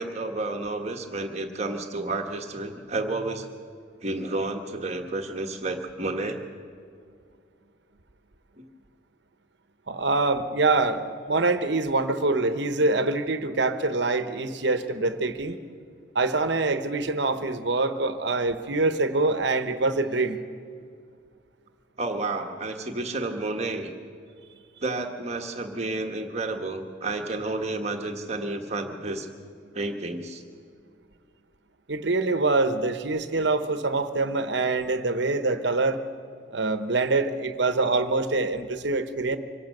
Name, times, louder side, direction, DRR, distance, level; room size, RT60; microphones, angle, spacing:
voice 1, 0.0-3.5 4.0-6.4 8.6-8.7 22.0-23.9 24.8-29.3 29.7-30.4, right 2 dB, 35° right, 3 dB, 1.4 m, -31 dB
voice 2, 9.9-15.6 16.1-20.4 31.9-36.0 36.5-39.4, right 3 dB, 60° right, 10 dB, 1.0 m, -25 dB
24.5 x 17.0 x 6.6 m, 2.2 s
head